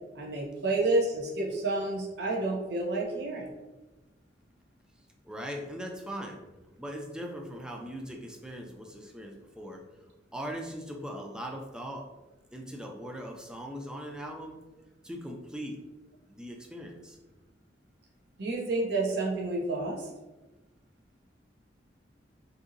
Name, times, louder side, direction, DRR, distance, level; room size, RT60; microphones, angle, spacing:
voice 1, 0.1-3.5 18.4-20.1, right 2 dB, 65° right, -2 dB, 0.6 m, -29 dB
voice 2, 5.2-6.4 6.8-9.8 10.3-12.1 12.5-14.6 15.0-15.8 16.3-17.2, equal, 5° right, 2 dB, 0.3 m, -40 dB
2.7 x 2.6 x 2.5 m, 1.1 s
head